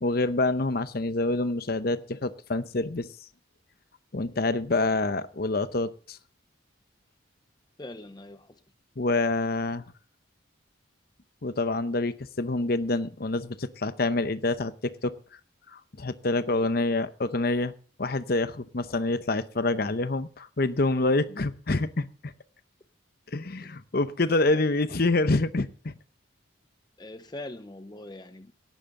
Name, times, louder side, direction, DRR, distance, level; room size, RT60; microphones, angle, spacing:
voice 1, 0.0-3.1 4.1-6.2 9.0-9.8 11.4-15.1 15.7-17.7 18.0-22.3 23.3-25.9, left 2 dB, 50° left, 13 dB, 0.8 m, -27 dB
voice 2, 7.8-8.6 16.5-16.7 23.6-23.7 27.0-28.5, left 2 dB, 20° left, 10 dB, 0.6 m, -42 dB
17.5 x 11.0 x 3.7 m, 0.39 s
head